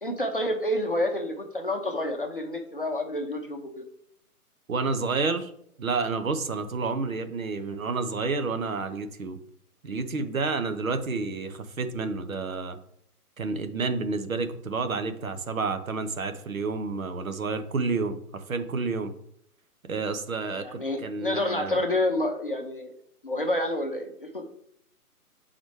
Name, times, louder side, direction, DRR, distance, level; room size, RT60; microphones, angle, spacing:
voice 1, 0.0-3.8 20.6-22.9 23.2-24.5, left 1 dB, 35° left, 3 dB, 0.7 m, -29 dB
voice 2, 4.7-5.5 5.8-9.4 9.8-12.8 13.4-19.1 19.8-21.8, right 4 dB, 60° right, 9 dB, 0.9 m, -30 dB
7.6 x 4.1 x 3.2 m, 0.70 s
hypercardioid pair, 175°, 46 cm